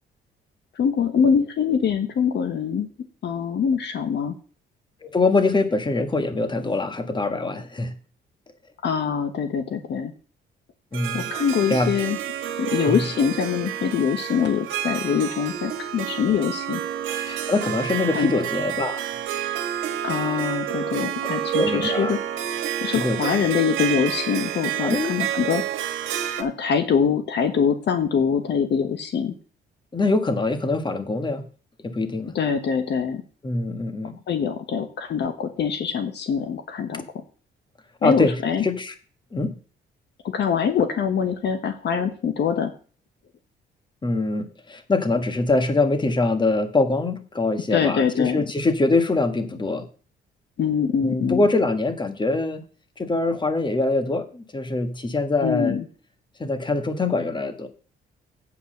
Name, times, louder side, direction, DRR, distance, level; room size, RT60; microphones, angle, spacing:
voice 1, 0.8-2.9 3.2-4.3 8.8-10.1 11.1-12.2 12.6-16.8 17.3-17.4 18.1-18.3 20.0-22.2 22.8-25.6 26.4-29.3 32.3-33.2 34.3-37.0 38.0-38.6 40.2-42.7 47.7-48.4 50.6-51.4 55.4-55.8, left 7 dB, 60° left, 8 dB, 1.2 m, -24 dB
voice 2, 5.0-8.0 10.9-11.3 11.7-12.0 12.8-13.0 17.3-19.1 21.0-21.1 21.5-22.1 22.9-23.5 24.8-25.1 29.9-31.4 31.8-32.3 33.4-34.2 36.9-37.0 38.0-38.9 39.3-39.6 44.0-49.9 51.0-52.6 53.0-55.8 56.4-57.7, left 3 dB, 25° left, 8 dB, 1.5 m, -24 dB
Harp, 10.9-26.4, right 10 dB, 85° right, 1.4 m, -29 dB
8.6 x 5.7 x 6.5 m, 0.39 s
cardioid pair, 90°, 20 cm